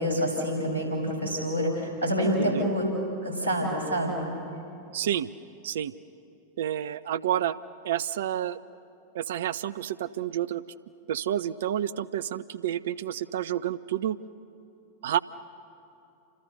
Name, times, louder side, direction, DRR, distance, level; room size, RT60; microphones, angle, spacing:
voice 1, 0.0-2.8 3.2-4.3, equal, 80° left, 1 dB, 6.8 m, -27 dB
voice 2, 2.4-2.7 4.9-5.3 5.6-5.9 6.6-7.6 7.8-8.6 9.1-10.6 11.1-14.2 15.0-15.2, right 11 dB, 60° right, 17 dB, 0.7 m, -29 dB
29.5 x 26.0 x 6.7 m, 2.7 s
figure-of-eight pair, 90°, 0 cm